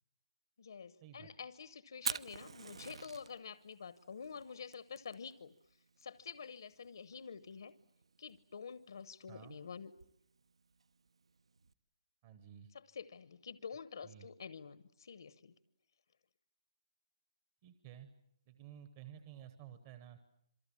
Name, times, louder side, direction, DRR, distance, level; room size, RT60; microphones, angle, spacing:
voice 1, 0.6-5.5 6.0-7.7 8.2-9.9 12.7-15.5, left 6 dB, 55° left, 14 dB, 1.0 m, -48 dB
Fire, 1.9-11.7, right 5 dB, 70° right, 1.1 m, -48 dB
voice 2, 12.2-12.7 14.0-14.3 17.6-18.1 18.5-20.2, right 10 dB, 20° right, 9 dB, 1.0 m, -53 dB
27.0 x 23.5 x 8.5 m, 0.76 s
hypercardioid pair, 175°, 3 cm